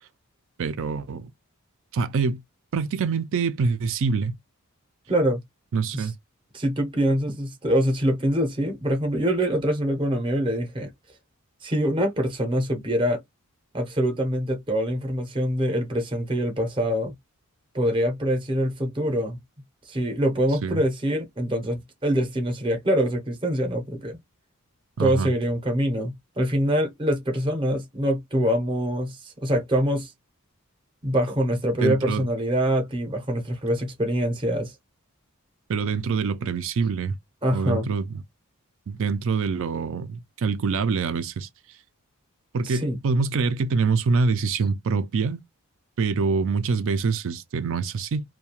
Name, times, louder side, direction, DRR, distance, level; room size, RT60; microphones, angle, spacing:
voice 1, 0.6-1.3 1.9-2.4 2.7-4.4 5.7-6.1 20.6-20.8 25.0-25.3 31.8-32.3 35.7-37.2 37.5-38.2 38.9-41.5 42.5-45.4 46.0-48.2, right 5 dB, 60° right, 0.4 m, -25 dB
voice 2, 5.1-5.4 5.9-6.1 6.5-10.9 11.6-13.2 13.7-17.1 17.7-19.4 19.9-24.2 25.0-30.1 31.0-34.7 37.4-37.9 42.6-43.0, equal, 20° right, 0.6 m, -24 dB
2.3 x 2.2 x 2.8 m
head